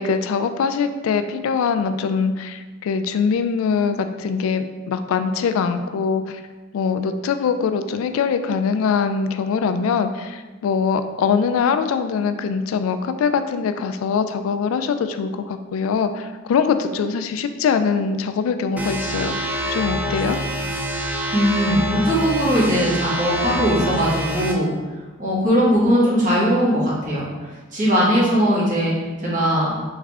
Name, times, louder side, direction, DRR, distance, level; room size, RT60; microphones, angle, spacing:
voice 1, 0.0-6.4 6.7-19.4 19.7-20.4, left 6 dB, 90° left, 10 dB, 0.3 m, -22 dB
sound 1, 18.8-24.5, equal, 10° right, 0.4 m, -26 dB
voice 2, 21.3-24.7 25.2-28.9 29.2-29.7, equal, 40° right, -7 dB, 1.4 m, -19 dB
3.6 x 3.2 x 3.5 m, 1.3 s
head